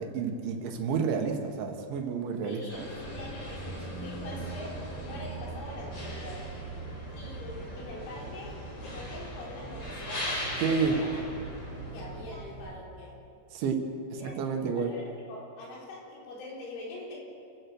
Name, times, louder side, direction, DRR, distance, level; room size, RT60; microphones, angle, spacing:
voice 1, 0.0-2.8 10.6-11.0 13.5-13.8 14.2-14.9, right 6 dB, 75° right, 4 dB, 4.0 m, -30 dB
voice 2, 2.4-6.5 7.1-11.2 11.9-13.2 14.2-14.3 14.6-17.2, left 2 dB, 80° left, -4 dB, 6.6 m, -43 dB
sound 1, 2.7-12.2, left 1 dB, 40° left, 7.9 m, -40 dB
sound 2, 3.0-12.8, right 3 dB, 25° right, 4.4 m, -42 dB
29.0 x 15.5 x 6.3 m, 2.5 s
omnidirectional pair, 5.5 m